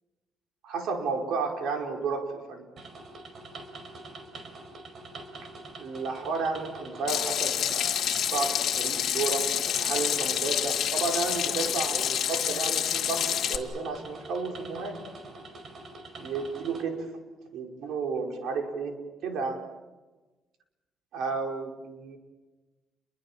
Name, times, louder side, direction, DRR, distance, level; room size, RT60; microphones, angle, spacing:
voice 1, 0.6-2.7 5.8-15.0 16.2-17.1 17.5-19.7 21.1-22.2, right 4 dB, 75° right, 3 dB, 5.2 m, -32 dB
sound 1, 2.8-16.8, right 2 dB, 50° right, 5.1 m, -45 dB
Water tap faucet / Sink (filling or washing), 7.1-13.6, left 10 dB, 65° left, 2.3 m, -28 dB
30.0 x 23.0 x 7.5 m, 1.2 s
cardioid pair, 115°, 0 cm